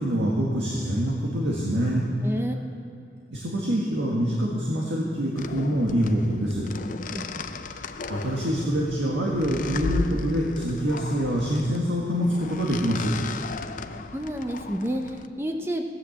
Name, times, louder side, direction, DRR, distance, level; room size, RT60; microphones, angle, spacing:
voice 1, 0.0-2.1 3.3-6.7 8.1-13.1, equal, 85° right, -3 dB, 1.7 m, -25 dB
voice 2, 2.2-2.5 7.1-7.5 14.0-15.8, equal, 15° right, 4 dB, 0.6 m, -30 dB
sound 1, 5.4-15.3, left 3 dB, 45° left, 0.5 m, -35 dB
15.5 x 9.7 x 7.2 m, 2.4 s
head